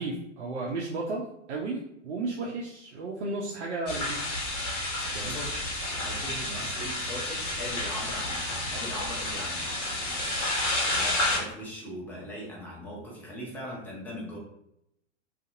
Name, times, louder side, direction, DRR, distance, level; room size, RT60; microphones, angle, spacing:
voice 1, 0.0-4.2 5.1-5.4, right 3 dB, 65° right, -2 dB, 0.6 m, -34 dB
sound 1, 3.9-11.4, left 1 dB, 75° left, 1.1 m, -30 dB
voice 2, 5.0-14.4, equal, 5° left, -4 dB, 0.3 m, -40 dB
2.6 x 2.4 x 2.6 m, 0.80 s
figure-of-eight pair, 105°, 37 cm